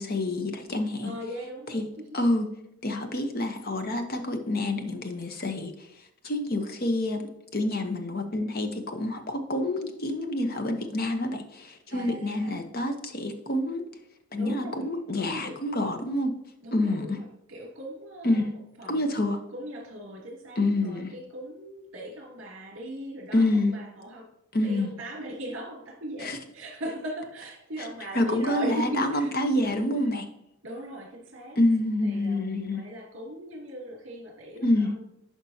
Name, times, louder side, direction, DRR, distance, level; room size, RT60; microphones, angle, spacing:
voice 1, 0.0-1.1 1.7-1.8 2.1-2.5 2.8-5.7 6.2-7.2 7.5-13.8 14.3-16.3 16.7-17.2 18.2-18.5 18.9-19.4 20.6-21.1 23.3-23.7 24.5-24.9 26.2-26.4 28.1-30.2 31.6-32.8 34.6-34.9, left 1 dB, 45° left, 6 dB, 0.9 m, -27 dB
voice 2, 1.0-2.1 11.9-12.6 14.4-14.9 15.1-15.6 16.6-19.1 19.5-24.3 24.6-29.4 30.0-30.1 30.6-31.6 32.0-35.0, equal, 55° right, -1 dB, 2.6 m, -39 dB
11.0 x 5.2 x 2.8 m, 0.83 s
head